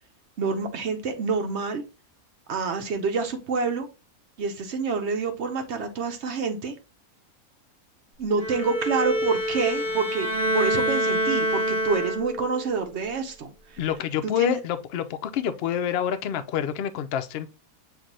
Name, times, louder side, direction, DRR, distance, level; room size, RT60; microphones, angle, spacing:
voice 1, 0.4-1.8 2.5-3.9 4.4-6.7 8.2-10.3 10.5-13.8 14.4-14.6, right 5 dB, 60° right, 0.8 m, -27 dB
Bowed string instrument, 8.4-12.5, equal, 35° right, 1.4 m, -26 dB
voice 2, 13.8-17.5, left 9 dB, 90° left, 0.5 m, -27 dB
7.5 x 2.6 x 2.6 m
omnidirectional pair, 1.6 m